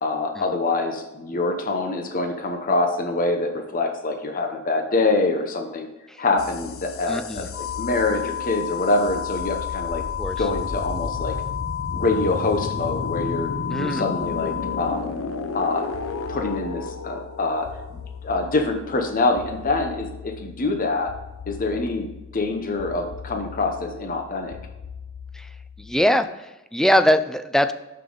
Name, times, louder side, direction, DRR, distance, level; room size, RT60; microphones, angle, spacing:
voice 1, 0.0-5.9 6.2-10.0 10.4-11.4 11.9-13.5 13.8-15.1 15.5-15.9 16.3-21.1 21.5-24.6, left 3 dB, 45° left, 4 dB, 0.9 m, -25 dB
sound 1, 6.4-26.0, left 4 dB, 75° left, 0.6 m, -35 dB
voice 2, 7.1-7.5 10.2-10.5 13.7-14.0 25.3-25.5 25.8-27.7, equal, ahead, 10 dB, 0.4 m, -22 dB
sound 2, 7.5-14.9, left 10 dB, 25° right, 1.2 m, -31 dB
6.9 x 6.7 x 3.9 m, 1.0 s
head